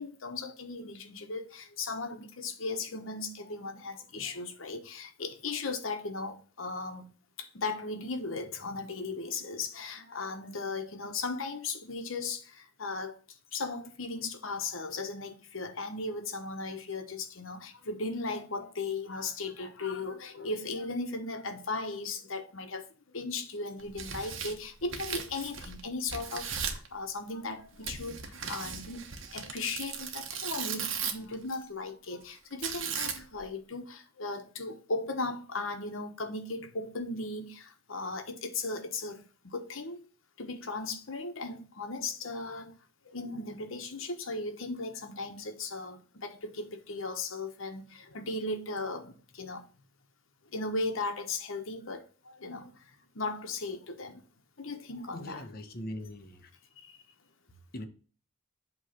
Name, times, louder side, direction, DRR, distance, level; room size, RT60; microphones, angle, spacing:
voice 1, 0.0-7.1 7.4-13.2 13.5-22.9 23.1-40.0 40.4-42.7 43.0-49.7 50.5-52.7 53.1-54.2 54.6-55.5 56.8-56.9, left 3 dB, 75° left, 1.1 m, -37 dB
Tearing, 23.8-25.8 26.1-26.9 27.8-31.3 32.6-33.4, right 7 dB, 70° right, 1.2 m, -37 dB
voice 2, 55.1-56.5 57.7-57.9, left 1 dB, 50° left, 1.0 m, -41 dB
8.1 x 3.2 x 5.8 m
head